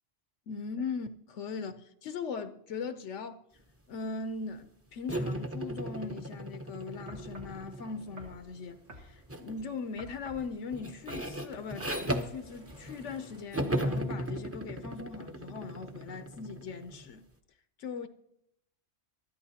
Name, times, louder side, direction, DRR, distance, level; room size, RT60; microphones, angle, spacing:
voice 1, 0.5-3.4 3.9-17.2 17.8-18.1, left 5 dB, 75° left, 1.0 m, -39 dB
sound 1, 5.1-8.4 9.3-9.6 10.0-13.2 13.5-17.1, right 1 dB, 15° right, 0.7 m, -36 dB
sound 2, 6.1-13.4, equal, 45° right, 2.2 m, -60 dB
sound 3, 7.1-7.6 8.2-8.4 8.9-9.1 10.0-10.5 11.1-11.3 11.8-12.0, equal, 70° right, 2.1 m, -48 dB
23.0 x 13.5 x 2.8 m
omnidirectional pair, 1.2 m